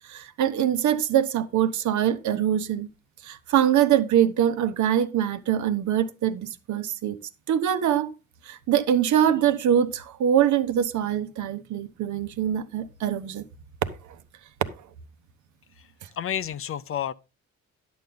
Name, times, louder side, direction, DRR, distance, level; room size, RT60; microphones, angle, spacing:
voice 1, 0.1-2.9 3.2-7.2 7.5-8.1 8.4-13.4, right 10 dB, 75° right, 1.0 m, -23 dB
voice 2, 16.2-17.1, left 9 dB, 45° left, 0.6 m, -30 dB
10.5 x 7.0 x 3.9 m
cardioid pair, 90°, 30 cm